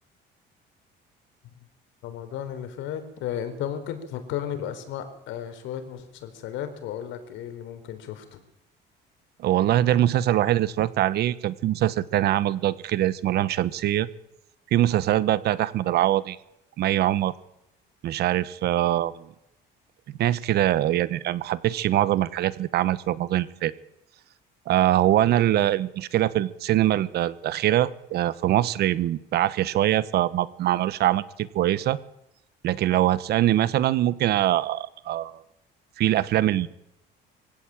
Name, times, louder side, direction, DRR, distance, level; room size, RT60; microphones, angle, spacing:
voice 1, 2.0-8.4, left 9 dB, 80° left, 9 dB, 4.3 m, -34 dB
voice 2, 9.4-14.1 14.7-16.4 16.8-17.3 18.0-19.3 20.2-23.7 24.7-32.0 32.6-35.4 36.0-36.7, right 13 dB, 60° right, 17 dB, 1.2 m, -23 dB
24.0 x 16.5 x 9.0 m, 0.85 s
cardioid pair, 170°, 19 cm